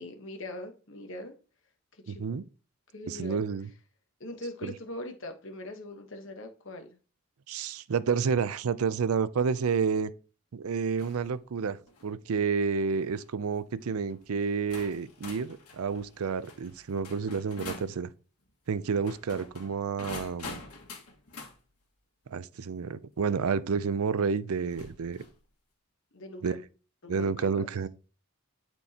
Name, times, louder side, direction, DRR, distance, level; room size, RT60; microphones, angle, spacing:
voice 1, 0.0-1.3 2.1-2.4 2.9-3.4 4.2-7.0 19.8-20.0 26.1-26.6 27.0-27.7, left 1 dB, 55° left, 1.2 m, -41 dB
voice 2, 2.1-2.4 3.1-3.7 4.6-4.7 7.5-10.1 10.5-11.8 12.0-18.1 18.7-20.6 22.3-25.2 26.4-26.6 27.1-27.9, right 5 dB, 75° right, 0.5 m, -30 dB
sound 1, 11.0-11.3 11.8-12.1 13.0-13.2 14.1-14.2 14.7-18.0 18.9-21.6 23.3-23.4 24.7-25.4, left 3 dB, 90° left, 1.8 m, -45 dB
11.5 x 4.5 x 2.9 m
head